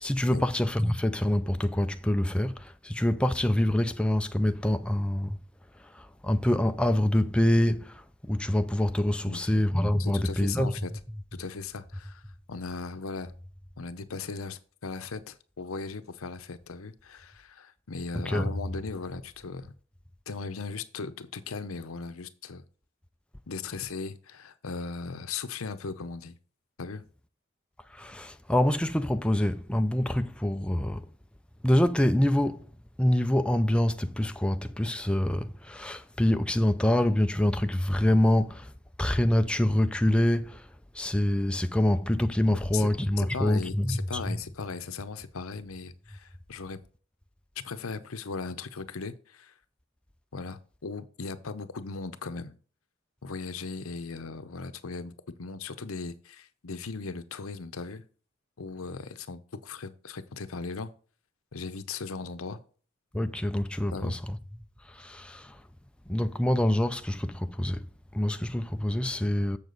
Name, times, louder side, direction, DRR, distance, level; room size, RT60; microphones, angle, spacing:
voice 1, 0.0-5.4 5.9-10.7 18.3-18.5 27.9-31.0 31.6-32.7 33.0-38.7 39.0-40.7 40.9-44.4 63.1-64.2 64.9-65.6 66.1-67.9 68.1-69.6, left 1 dB, 5° left, 0.4 m, -26 dB
voice 2, 9.2-9.6 10.0-10.9 11.3-12.2 12.5-13.3 13.8-19.7 20.3-22.6 23.5-26.4 26.8-27.0 42.5-42.9 43.2-46.8 47.6-49.5 50.3-52.6 53.2-55.1 55.4-58.1 58.6-60.9 61.5-62.6 63.9-64.2, left 4 dB, 85° left, 0.8 m, -38 dB
7.1 x 6.9 x 3.9 m
head